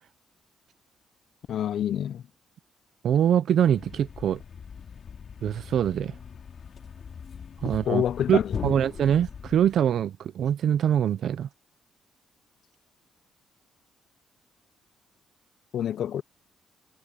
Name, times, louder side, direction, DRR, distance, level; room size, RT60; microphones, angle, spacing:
voice 1, 1.5-2.2 7.9-8.7 15.7-16.2, left 10 dB, 65° left, 0.6 m, -27 dB
voice 2, 3.0-4.4 5.4-6.1 7.6-8.0 8.3-11.5, right 9 dB, 65° right, 0.6 m, -24 dB
Thump thud, 3.6-9.8, left 7 dB, 50° left, 2.5 m, -40 dB
cardioid pair, 90°, 0 cm